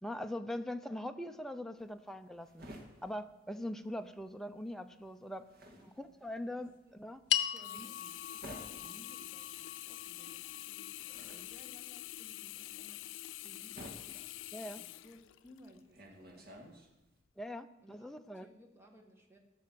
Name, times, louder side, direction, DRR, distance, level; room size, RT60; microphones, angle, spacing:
voice 1, 0.0-2.6 3.0-5.4 6.0-7.2 11.3-11.5 14.5-14.8 17.4-18.5, left 1 dB, ahead, 7 dB, 0.6 m, -42 dB
sound 1, 1.8-4.3 4.6-17.2, equal, 55° right, 2.0 m, -54 dB
voice 2, 5.8-6.1 6.6-6.9 7.3-14.0 14.8-16.7 17.8-18.1 18.3-19.4, equal, 15° right, 2 dB, 1.9 m, -60 dB
sound 2, 7.3-11.8, left 11 dB, 65° left, 0.7 m, -39 dB
Sink (filling or washing), 7.6-15.8 16.3-16.4, left 15 dB, 85° left, 0.3 m, -46 dB
15.0 x 6.2 x 7.6 m, 0.97 s
head